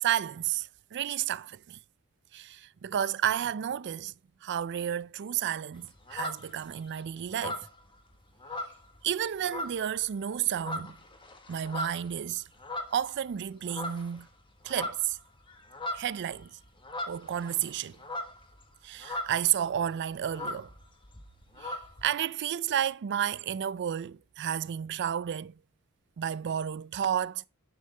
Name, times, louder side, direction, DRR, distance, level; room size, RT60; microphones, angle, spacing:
voice 1, 0.0-1.8 2.3-4.1 4.4-7.7 9.0-11.0 11.5-12.4 12.9-14.3 14.6-15.2 15.9-16.5 17.1-18.0 18.8-20.7 21.6-25.5 26.2-27.5, right 10 dB, 50° right, 0.3 m, -31 dB
sound 1, 5.7-6.9 7.3-9.1 9.4-10.0 10.4-13.3 13.7-14.2 14.5-19.6 19.8-19.9 20.1-22.0, left 1 dB, 20° left, 1.3 m, -39 dB
10.5 x 6.5 x 3.3 m
head